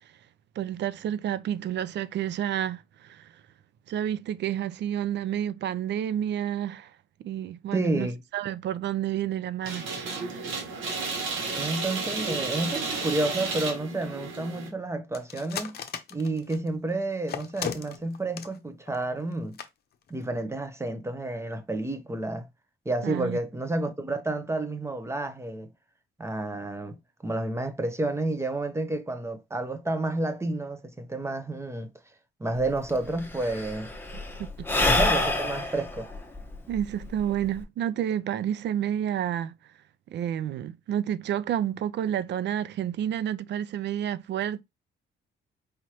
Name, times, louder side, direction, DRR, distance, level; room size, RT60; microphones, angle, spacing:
voice 1, 0.6-3.3 3.9-6.9 7.2-10.9 23.0-23.4 34.1-34.2 34.6-34.7 34.9-35.1 35.7-35.8 36.7-39.6 40.1-44.6, right 10 dB, 60° right, 0.4 m, -30 dB
voice 2, 7.7-8.2 11.5-15.8 16.1-19.6 20.1-22.5 22.9-25.7 26.2-27.0 27.2-31.9 32.4-33.9 34.8-36.1, right 2 dB, 15° right, 0.8 m, -30 dB
sound 1, 9.6-14.7, right 4 dB, 80° right, 1.4 m, -32 dB
sound 2, 15.1-16.7 17.3-18.6 18.9-19.0 19.3-19.4 19.6-19.7 20.1-20.3, left 8 dB, 55° left, 0.7 m, -35 dB
Sigh / Breathing, 32.6-32.7 32.9-37.6, left 2 dB, 10° left, 1.0 m, -27 dB
4.9 x 3.0 x 2.8 m
cardioid pair, 90°, 20 cm